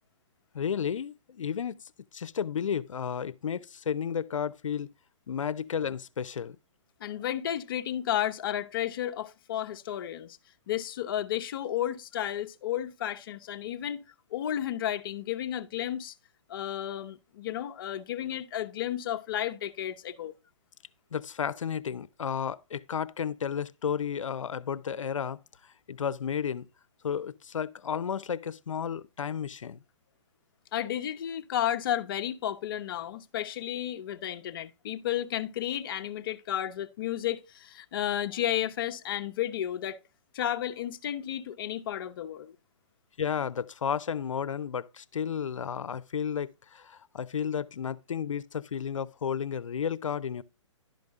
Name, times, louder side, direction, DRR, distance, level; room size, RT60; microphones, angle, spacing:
voice 1, 0.5-1.8 2.1-4.9 5.3-6.6 21.1-25.4 25.9-26.7 27.0-29.8 43.2-50.4, left 7 dB, 85° left, 0.7 m, -32 dB
voice 2, 7.0-10.4 10.7-14.0 14.3-16.2 16.5-20.3 30.7-40.0 40.3-42.5, left 11 dB, 45° left, 0.9 m, -32 dB
11.5 x 5.3 x 3.6 m
hypercardioid pair, 150°, 16 cm